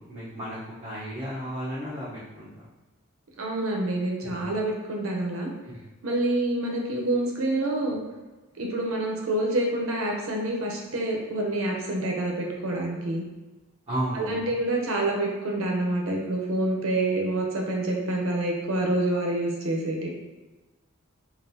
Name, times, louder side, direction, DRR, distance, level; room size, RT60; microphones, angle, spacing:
voice 1, 0.0-2.6 4.2-4.5 5.7-5.8 13.9-14.6, right 1 dB, 30° right, -10 dB, 0.9 m, -34 dB
voice 2, 3.4-5.5 6.0-8.0 8.6-13.2 14.1-20.1, right 1 dB, 85° right, 0 dB, 0.7 m, -27 dB
5.2 x 2.6 x 2.7 m, 1.2 s
head